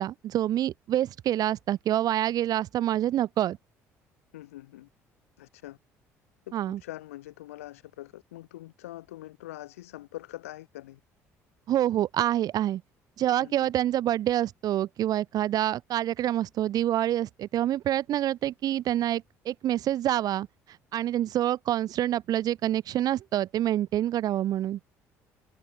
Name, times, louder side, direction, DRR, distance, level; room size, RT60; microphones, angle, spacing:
voice 1, 0.0-3.6 6.5-6.8 11.7-12.8 13.2-20.5 20.9-24.8, right 12 dB, 60° right, 1.1 m, -27 dB
voice 2, 4.3-4.9 5.4-5.8 6.5-11.0 13.4-13.7, left 16 dB, 85° left, 6.3 m, -44 dB
hypercardioid pair, 60°, 7 cm